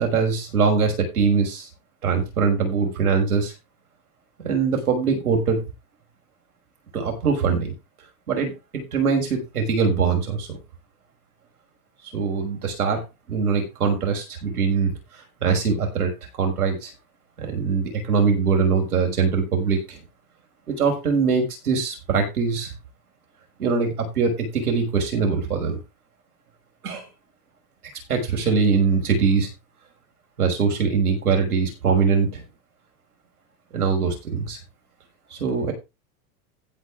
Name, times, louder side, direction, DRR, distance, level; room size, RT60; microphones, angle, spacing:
voice 1, 0.0-1.7 2.0-3.5 4.4-5.6 6.9-7.7 8.3-10.6 12.1-13.0 13.3-15.0 15.4-16.1 16.4-16.9 17.4-20.0 20.7-22.7 23.6-25.8 26.8-27.1 28.1-29.5 30.4-32.4 33.7-34.6 35.3-35.7, right 5 dB, 90° right, 3 dB, 6.1 m, -22 dB
15.5 x 5.3 x 4.9 m, 0.25 s
hypercardioid pair, 105°, 43 cm